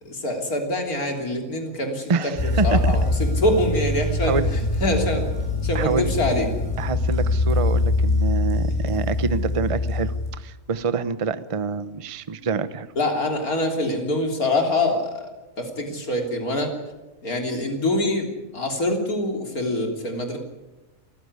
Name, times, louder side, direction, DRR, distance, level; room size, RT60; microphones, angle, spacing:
voice 1, 0.0-2.1 2.6-3.0 3.4-5.3 5.6-6.5 13.0-15.3 15.6-16.7 17.2-20.4, left 1 dB, 85° left, 3 dB, 3.9 m, -24 dB
voice 2, 2.1-3.0 4.2-4.5 5.7-6.1 6.8-10.1 10.4-12.9, right 5 dB, 30° right, 13 dB, 0.8 m, -26 dB
sound 1, 2.3-10.3, left 2 dB, 35° left, 7.6 m, -23 dB
27.5 x 15.0 x 9.7 m, 1.1 s
omnidirectional pair, 1.5 m